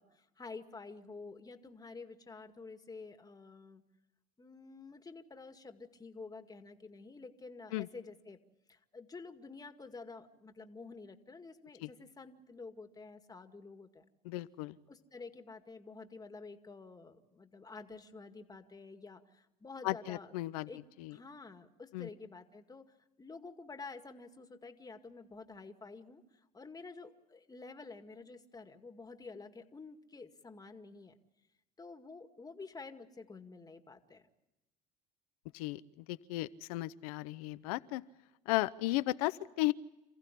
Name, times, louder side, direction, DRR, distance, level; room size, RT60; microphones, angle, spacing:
voice 1, 0.0-3.8 4.4-8.4 8.7-14.1 14.9-20.3 20.7-20.8 21.1-31.1 31.8-34.2, left 4 dB, 20° left, 7 dB, 2.1 m, -50 dB
voice 2, 14.2-14.8 19.8-20.7 21.0-21.1 21.9-22.1 35.5-38.0 38.5-39.7, left 18 dB, 85° left, 16 dB, 0.9 m, -35 dB
28.0 x 15.5 x 10.0 m, 0.98 s
supercardioid pair, 90°, 19 cm